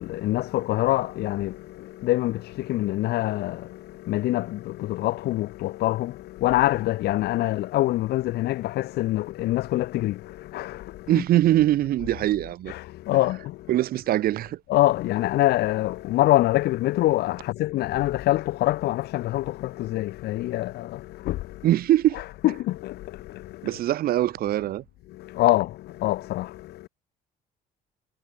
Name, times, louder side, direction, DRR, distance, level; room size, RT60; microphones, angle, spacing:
voice 1, 0.0-11.2 12.7-13.7 14.7-21.7 22.1-23.8 25.1-26.9, left 16 dB, 75° left, 1.0 m, -25 dB
voice 2, 11.1-12.7 13.7-14.6 21.6-22.2 23.6-24.8, right 13 dB, 65° right, 1.0 m, -22 dB
cardioid pair, 110°, 17 cm